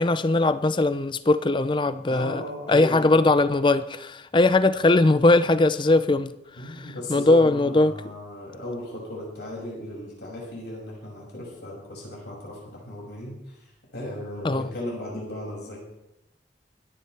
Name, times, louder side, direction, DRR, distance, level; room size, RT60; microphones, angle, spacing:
voice 1, 0.0-2.4 2.7-6.3 7.1-7.9 14.4-14.7, left 2 dB, 25° left, 0.5 m, -20 dB
voice 2, 2.1-3.3 6.6-13.6 13.9-15.8, left 1 dB, 70° left, 6.4 m, -36 dB
25.5 x 10.5 x 3.4 m
head